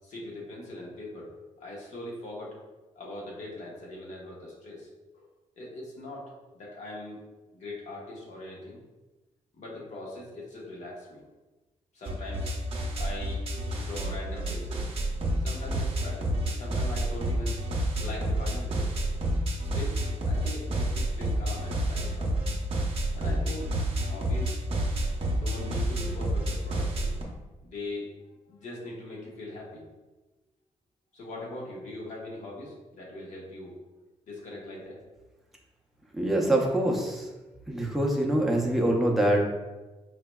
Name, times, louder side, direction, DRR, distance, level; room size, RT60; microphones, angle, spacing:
voice 1, 0.0-1.3 1.6-2.6 3.0-5.3 5.6-6.2 6.5-7.2 7.5-8.8 9.6-11.2 11.9-12.5 13.0-13.5 13.8-14.9 15.4-17.6 18.0-19.0 19.7-22.4 23.1-23.7 24.0-24.6 25.3-27.1 27.6-28.1 28.5-29.8 31.1-33.7 34.3-35.0, left 1 dB, 70° left, -4 dB, 1.2 m, -41 dB
sound 1, 12.1-27.2, right 1 dB, 45° right, 0.7 m, -29 dB
voice 2, 36.1-37.3 37.7-39.4, right 1 dB, ahead, -2 dB, 0.6 m, -24 dB
4.6 x 3.2 x 2.3 m, 1.1 s
wide cardioid pair, 135°, 13 cm